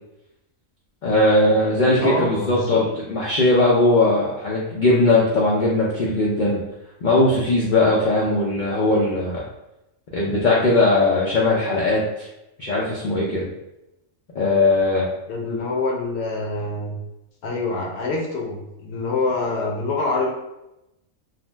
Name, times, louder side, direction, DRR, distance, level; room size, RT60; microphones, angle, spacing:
voice 1, 1.0-6.6 7.0-9.4 10.1-12.3 12.6-13.5 14.3-15.1, left 2 dB, 85° left, -5 dB, 0.4 m, -19 dB
voice 2, 2.0-2.8 15.3-16.9 17.4-20.3, left 3 dB, 65° left, -1 dB, 0.8 m, -25 dB
2.7 x 2.0 x 3.1 m, 0.90 s
omnidirectional pair, 1.4 m